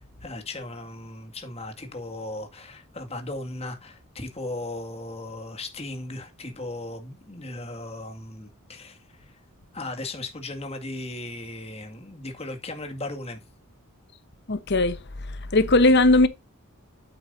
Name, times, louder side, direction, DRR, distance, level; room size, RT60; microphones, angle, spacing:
voice 1, 0.2-9.4 9.7-13.4, left 2 dB, 30° left, 2.0 m, -37 dB
voice 2, 14.5-15.0 15.3-16.3, left 2 dB, 50° left, 1.0 m, -19 dB
9.1 x 8.2 x 2.6 m
head